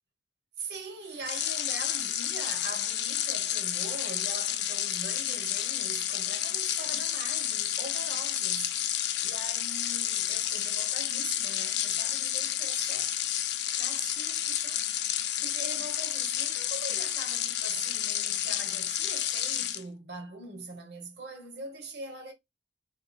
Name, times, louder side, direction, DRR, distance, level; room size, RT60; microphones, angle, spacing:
voice 1, 0.6-8.8 9.2-13.1 13.8-14.8 15.4-22.3, right 2 dB, 65° right, 1.2 m, -42 dB
sound 1, 1.2-19.8, left 11 dB, 70° left, 0.5 m, -30 dB
3.7 x 2.4 x 4.0 m
head